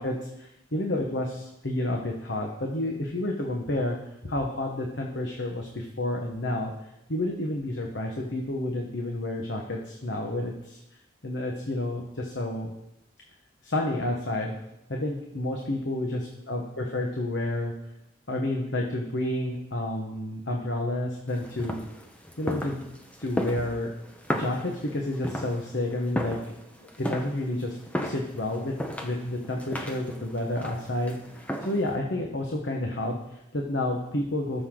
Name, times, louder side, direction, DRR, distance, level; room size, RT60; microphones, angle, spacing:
voice 1, 0.0-4.0 4.2-6.7 7.1-10.8 11.2-12.7 13.6-14.5 14.9-17.7 18.3-21.8 22.4-22.9 23.2-23.9 24.3-26.4 27.0-28.7 29.0-34.6, left 1 dB, 60° left, 1 dB, 1.3 m, -30 dB
sound 1, 21.3-32.0, equal, 5° left, 0.9 m, -35 dB
18.0 x 6.9 x 3.9 m, 0.85 s
head